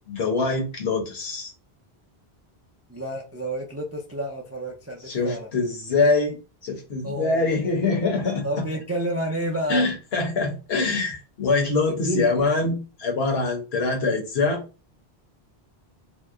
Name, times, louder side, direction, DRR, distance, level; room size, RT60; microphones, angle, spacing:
voice 1, 0.1-1.5 5.1-6.3 6.6-8.4 9.7-14.6, left 3 dB, 75° left, 1.1 m, -24 dB
voice 2, 2.9-5.5 7.0-7.9 8.4-9.8 11.9-12.5, right 1 dB, 25° right, 0.3 m, -30 dB
2.8 x 2.0 x 3.5 m
omnidirectional pair, 1.1 m